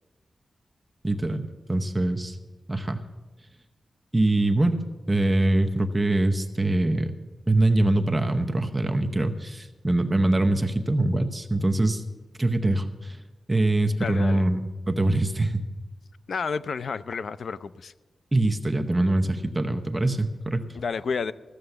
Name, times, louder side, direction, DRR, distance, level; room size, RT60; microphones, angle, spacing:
voice 1, 1.0-2.4 2.7-3.0 4.1-4.8 5.1-7.1 7.5-12.0 12.4-13.2 13.5-14.6 14.9-15.6 18.3-20.6, right 2 dB, 15° right, 5 dB, 0.8 m, -23 dB
voice 2, 14.0-14.5 16.3-17.9 20.7-21.3, left 5 dB, 65° left, 14 dB, 0.4 m, -30 dB
14.5 x 6.9 x 7.8 m, 1.2 s
wide cardioid pair, 145°, 0 cm